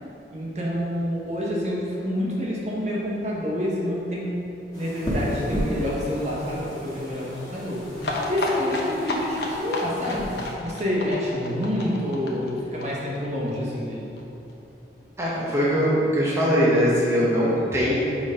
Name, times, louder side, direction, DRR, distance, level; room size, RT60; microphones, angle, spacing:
voice 1, 0.3-4.4 4.7-14.2, left 1 dB, 40° right, -4 dB, 1.0 m, -28 dB
sound 1, 4.7-10.5, equal, 20° left, 1.3 m, -33 dB
sound 2, 8.0-13.6 13.8-13.9 14.2-14.3 14.5-14.6, left 2 dB, 70° left, 0.9 m, -31 dB
voice 2, 15.2-18.0, equal, 15° right, -7 dB, 1.0 m, -21 dB
6.1 x 4.3 x 5.0 m, 2.9 s
head